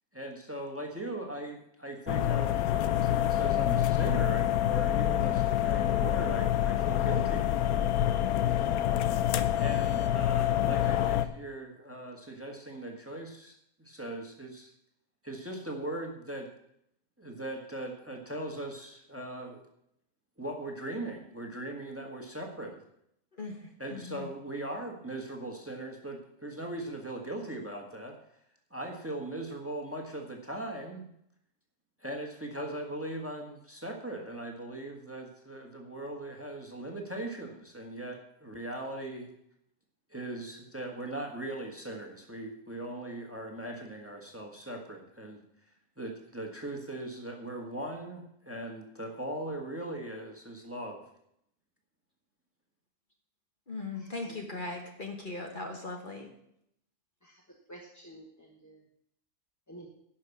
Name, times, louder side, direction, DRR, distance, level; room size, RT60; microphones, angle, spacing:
voice 1, 0.1-2.6 2.8-7.6 9.6-14.7 15.2-16.5 17.2-19.6 20.4-22.8 23.8-28.2 28.7-31.1 32.0-39.3 40.1-45.4 46.0-51.0, right 1 dB, 10° right, 2 dB, 1.5 m, -39 dB
sound 1, 2.1-11.3, left 11 dB, 80° left, 1.1 m, -27 dB
voice 2, 23.9-24.3 53.7-56.3, left 3 dB, 35° left, 2 dB, 1.4 m, -38 dB
voice 3, 53.9-54.4 57.2-57.4 57.7-58.8 59.7-59.9, right 1 dB, 15° left, -1 dB, 1.1 m, -51 dB
11.0 x 5.9 x 8.4 m, 0.75 s
omnidirectional pair, 1.5 m